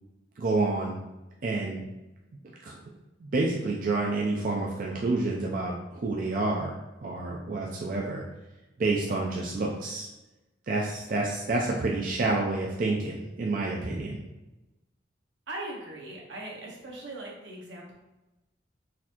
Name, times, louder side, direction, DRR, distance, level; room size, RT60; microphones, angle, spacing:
voice 1, 0.4-1.0 1.4-1.8 2.6-2.8 3.2-6.7 7.0-8.2 8.8-10.1 10.7-14.2, right 2 dB, 45° right, -2 dB, 0.4 m, -28 dB
voice 2, 15.5-17.9, right 2 dB, 80° right, -3 dB, 1.1 m, -40 dB
4.1 x 2.6 x 2.9 m, 1.0 s
head